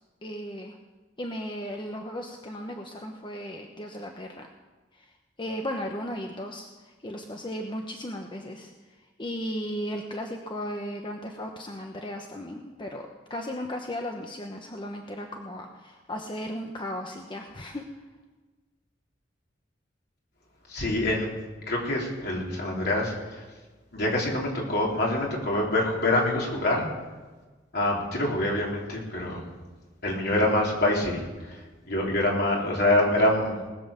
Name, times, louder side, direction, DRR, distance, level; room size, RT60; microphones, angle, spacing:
voice 1, 0.2-0.8 1.2-4.5 5.0-5.1 5.4-8.7 9.2-17.8, equal, 25° left, 2 dB, 1.0 m, -36 dB
voice 2, 20.7-21.3 21.7-23.4 23.9-26.9 27.7-29.4 30.0-31.2 31.9-33.5, left 1 dB, 60° left, -3 dB, 3.8 m, -25 dB
19.5 x 7.8 x 6.8 m, 1.3 s
head